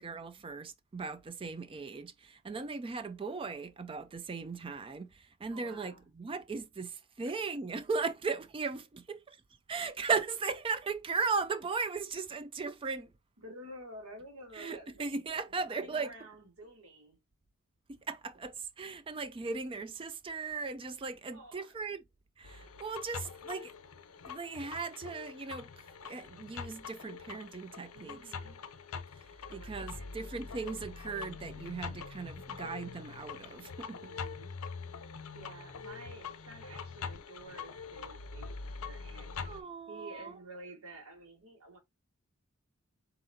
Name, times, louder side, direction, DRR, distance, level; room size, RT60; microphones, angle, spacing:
voice 1, 0.0-9.4 9.7-13.1 14.5-16.1 18.1-22.0 22.4-23.7 24.3-25.7 26.0-28.2 29.5-34.0 39.4-40.3, right 4 dB, 25° right, 0.3 m, -37 dB
voice 2, 5.5-6.0 7.2-7.4 13.4-15.1 15.4-17.2 21.3-21.7 27.9-28.6 29.5-30.2 34.0-34.5 35.3-41.8, right 1 dB, 80° right, 1.7 m, -51 dB
sound 1, 22.4-39.6, left 5 dB, 80° left, 0.6 m, -44 dB
4.0 x 4.0 x 2.6 m
head